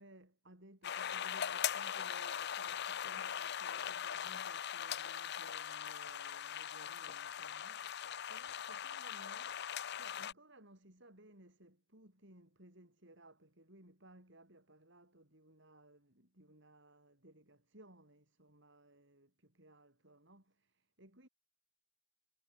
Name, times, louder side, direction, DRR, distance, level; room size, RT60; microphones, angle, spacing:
voice 1, 0.0-21.3, right 1 dB, 60° right, 6.3 m, -61 dB
sound 1, 0.8-10.3, left 9 dB, 50° left, 0.6 m, -40 dB
head